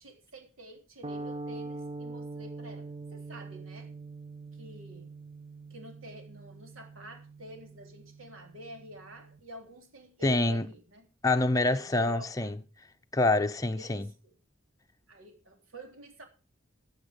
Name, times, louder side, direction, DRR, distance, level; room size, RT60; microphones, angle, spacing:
voice 1, 0.0-4.0 4.5-5.1 5.7-11.1 11.7-12.6 13.8-14.4 15.1-16.3, right 1 dB, 70° right, 3.7 m, -48 dB
sound 1, 1.0-9.4, right 3 dB, 25° right, 0.6 m, -43 dB
voice 2, 10.2-10.6 11.2-12.5 13.1-14.1, left 2 dB, 15° left, 0.9 m, -26 dB
15.5 x 8.1 x 5.3 m
head